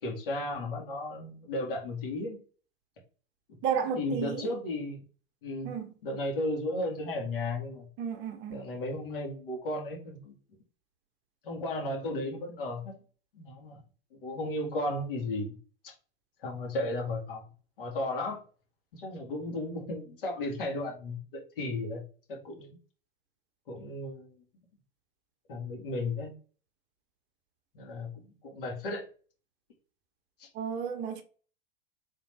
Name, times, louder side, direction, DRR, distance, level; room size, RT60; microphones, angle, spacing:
voice 1, 0.0-2.4 4.0-5.0 5.4-5.7 6.0-7.9 8.5-10.3 11.4-12.9 13.3-13.8 14.2-15.6 16.4-17.4 17.8-18.4 18.9-22.0 22.3-22.8 23.7-24.3 25.5-26.3 27.7-28.1 28.4-29.0 30.4-30.5, left 2 dB, 65° left, 2.1 m, -34 dB
voice 2, 3.6-4.5 5.6-5.9 8.0-8.6 30.5-31.2, right 7 dB, 40° right, 0.9 m, -32 dB
3.9 x 3.6 x 3.3 m
figure-of-eight pair, 90°, 29 cm